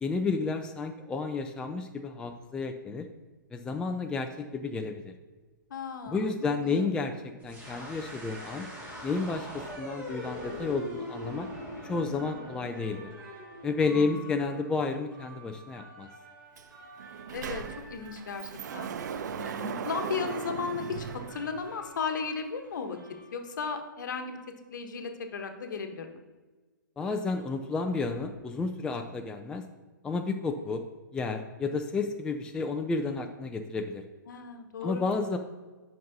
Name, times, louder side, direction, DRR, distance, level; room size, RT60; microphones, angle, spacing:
voice 1, 0.0-3.1 3.5-5.1 6.1-7.1 7.4-8.7 9.0-11.5 11.8-13.0 13.6-16.1 27.0-29.6 30.0-30.8 31.1-34.0 34.8-35.4, left 4 dB, 5° left, 5 dB, 0.3 m, -31 dB
voice 2, 5.7-7.0 13.9-14.3 17.3-18.9 19.4-23.0 23.3-24.4 24.7-26.1 34.3-35.0, left 5 dB, 60° left, 6 dB, 1.0 m, -36 dB
sound 1, 7.4-14.2, equal, 15° right, 2.0 m, -42 dB
sound 2, 8.1-23.9, right 1 dB, 75° right, 2.1 m, -52 dB
Sliding door, 16.6-16.7 17.0-22.0, right 7 dB, 55° right, 0.5 m, -38 dB
11.0 x 5.3 x 2.7 m, 1.3 s
figure-of-eight pair, 120°, 11 cm